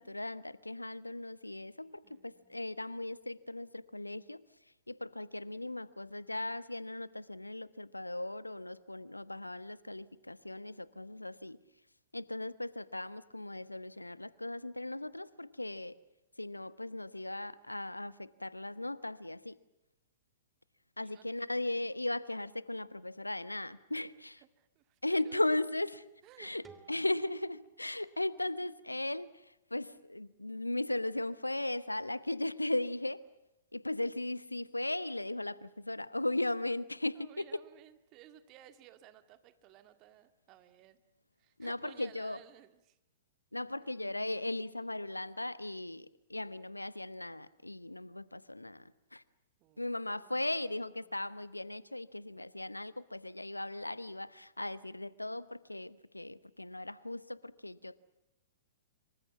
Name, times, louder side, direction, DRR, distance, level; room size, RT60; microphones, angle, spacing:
voice 1, 0.0-4.4 4.9-11.6 12.1-16.0 16.4-19.6 21.0-24.4 25.0-26.0 26.4-26.6 26.9-29.3 29.7-33.2 33.7-37.6 41.6-42.4 43.5-49.2 49.8-58.0, left 1 dB, 90° left, 18 dB, 0.9 m, -37 dB
voice 2, 2.0-2.7 21.0-21.3 24.4-25.5 26.2-26.5 37.1-41.0 41.4-43.0 49.6-51.2, right 12 dB, 35° right, 10 dB, 2.0 m, -58 dB
sound 1, 26.6-29.5, right 5 dB, 15° right, 3.0 m, -61 dB
26.5 x 24.5 x 7.2 m, 0.90 s
figure-of-eight pair, 105°, 0 cm